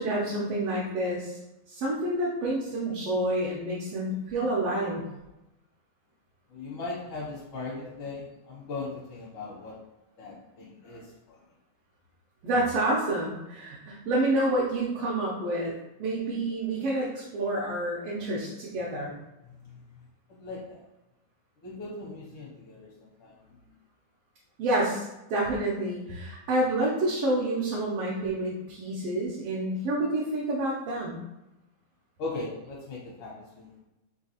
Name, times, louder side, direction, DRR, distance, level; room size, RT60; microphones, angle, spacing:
voice 1, 0.0-1.4 1.7-5.0 12.4-15.7 16.0-19.2 24.6-31.2, right 1 dB, 75° right, -4 dB, 1.4 m, -28 dB
voice 2, 6.5-9.8 10.2-11.4 19.5-19.8 20.4-20.8 21.6-23.3 23.6-23.7 32.2-33.7, left 3 dB, 75° left, -5 dB, 1.2 m, -39 dB
4.5 x 2.8 x 2.8 m, 0.96 s
omnidirectional pair, 3.3 m